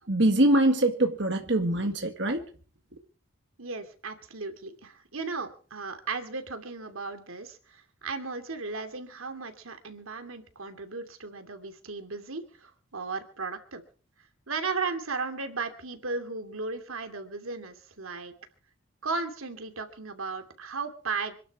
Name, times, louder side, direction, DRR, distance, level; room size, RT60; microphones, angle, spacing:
voice 1, 0.1-2.4, right 1 dB, 55° right, 1.8 m, -23 dB
voice 2, 3.6-13.8 14.5-18.3 19.0-21.4, right 4 dB, 90° right, 2.7 m, -35 dB
25.5 x 12.0 x 4.8 m
head